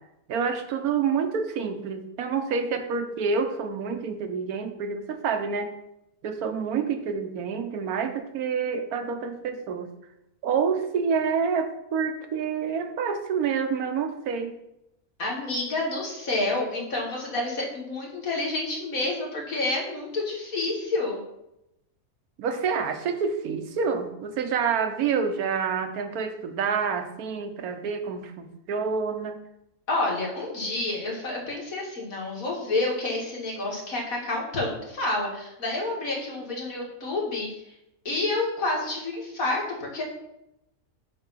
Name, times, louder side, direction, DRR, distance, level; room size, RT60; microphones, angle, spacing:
voice 1, 0.3-5.7 6.2-9.9 10.4-14.6 22.4-29.4, right 6 dB, 90° right, 7 dB, 1.3 m, -28 dB
voice 2, 15.2-21.2 29.9-37.5 38.0-40.0, left 2 dB, 70° left, -2 dB, 2.3 m, -29 dB
8.6 x 3.5 x 5.6 m, 0.85 s
omnidirectional pair, 1.5 m